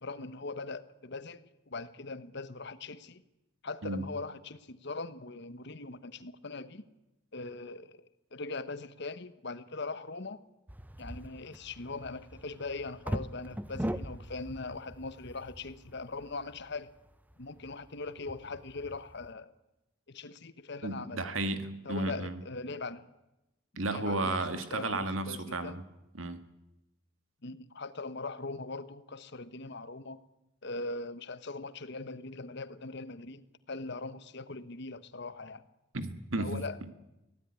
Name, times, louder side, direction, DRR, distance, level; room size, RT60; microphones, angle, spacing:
voice 1, 0.0-3.2 3.6-6.8 7.3-10.4 11.0-16.9 17.4-19.5 20.1-21.2 21.8-23.1 23.9-25.8 27.4-30.2 30.6-33.4 33.7-35.6 36.4-36.9, left 3 dB, 55° left, 1.2 m, -41 dB
sound 1, 10.7-19.3, equal, 10° right, 0.8 m, -41 dB
voice 2, 20.8-22.4 23.8-25.8 26.2-26.4 35.9-36.6, right 2 dB, 80° right, 2.0 m, -33 dB
23.5 x 16.5 x 9.7 m
head